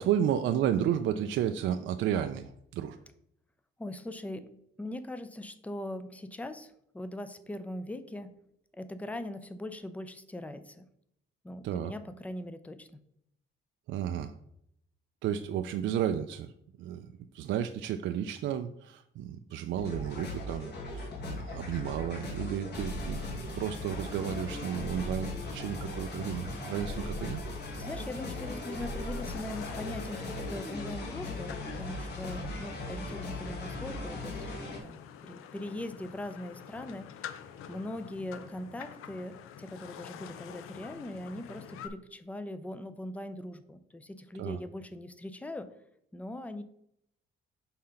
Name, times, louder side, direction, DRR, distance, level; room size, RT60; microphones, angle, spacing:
voice 1, 0.0-3.0 11.6-11.9 13.9-14.3 15.2-16.5 16.8-27.4 44.4-44.6, right 10 dB, 65° right, 8 dB, 0.4 m, -32 dB
voice 2, 3.8-4.5 4.8-8.3 8.7-10.9 11.4-13.0 27.8-34.5 34.8-37.3 37.7-45.7 46.1-46.6, left 1 dB, 5° left, 11 dB, 0.4 m, -41 dB
sound 1, 19.8-34.8, left 2 dB, 50° left, 1.5 m, -38 dB
sound 2, 28.8-41.9, left 9 dB, 90° left, 0.6 m, -47 dB
5.7 x 3.8 x 5.7 m, 0.74 s
cardioid pair, 145°, 21 cm